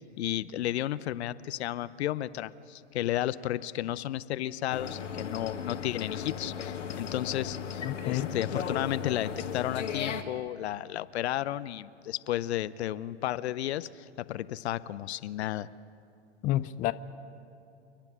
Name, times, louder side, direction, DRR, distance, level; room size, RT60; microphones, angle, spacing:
voice 1, 0.2-15.7, left 13 dB, 65° left, 17 dB, 0.7 m, -33 dB
sound 1, 4.7-10.2, left 7 dB, 85° left, 1.7 m, -36 dB
voice 2, 7.8-8.3 16.4-16.9, left 15 dB, 20° left, 12 dB, 0.4 m, -29 dB
29.0 x 10.5 x 10.0 m, 2.6 s
hypercardioid pair, 110°, 36 cm